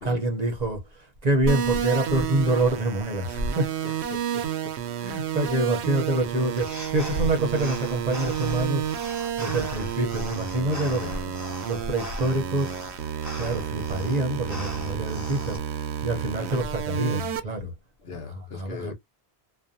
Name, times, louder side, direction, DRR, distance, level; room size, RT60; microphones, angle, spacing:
voice 1, 0.0-3.7 5.0-8.9 9.4-11.1 11.6-12.8 13.4-17.7 18.5-18.9, right 2 dB, 45° right, 0.7 m, -26 dB
sound 1, 1.5-17.4, right 9 dB, 85° right, 0.9 m, -31 dB
voice 2, 3.8-4.7 10.9-11.4 18.0-18.9, left 6 dB, 65° left, 0.9 m, -40 dB
sound 2, 6.3-15.6, equal, 15° left, 1.0 m, -40 dB
2.5 x 2.2 x 2.6 m
omnidirectional pair, 1.1 m